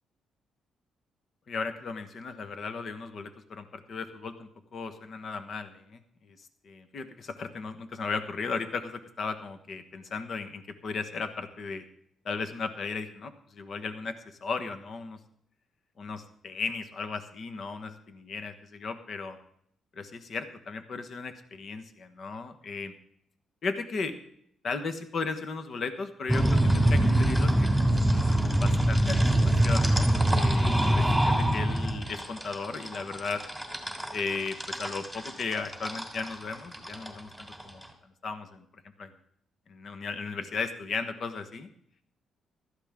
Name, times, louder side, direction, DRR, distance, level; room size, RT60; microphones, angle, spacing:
voice 1, 1.5-6.0 6.3-11.8 12.2-15.2 16.0-19.4 19.9-22.9 23.6-24.2 24.6-28.0 28.4-29.2 29.5-33.4 34.1-37.8 38.2-38.6 39.0-39.1 39.7-41.7, left 4 dB, 55° left, 8 dB, 1.2 m, -36 dB
sound 1, 26.3-37.8, right 1 dB, 5° left, 3.0 m, -24 dB
16.0 x 13.0 x 3.7 m, 0.69 s
cardioid pair, 90°, 0 cm